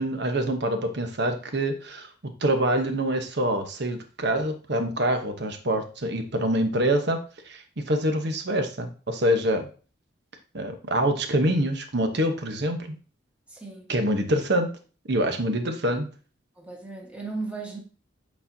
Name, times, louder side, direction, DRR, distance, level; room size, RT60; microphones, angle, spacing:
voice 1, 0.0-9.7 10.5-13.0 13.9-14.7 15.1-16.1, right 1 dB, 60° right, 1.0 m, -25 dB
voice 2, 13.5-13.9 15.4-15.7 16.6-17.8, right 3 dB, 5° right, 1.4 m, -36 dB
8.2 x 4.3 x 2.7 m
head